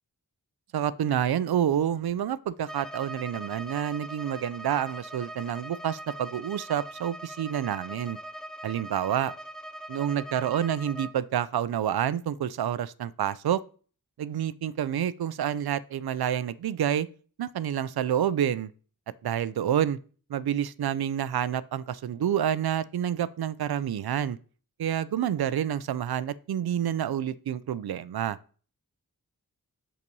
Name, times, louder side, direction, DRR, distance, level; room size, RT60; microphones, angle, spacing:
voice 1, 0.7-8.2 8.6-9.3 9.9-13.6 14.2-17.1 17.4-18.7 19.2-20.0 20.3-24.4 24.8-28.4, right 10 dB, 90° right, 0.5 m, -28 dB
Bowed string instrument, 2.7-11.2, right 1 dB, ahead, 0.7 m, -42 dB
6.6 x 5.5 x 5.3 m
wide cardioid pair, 50°, 36 cm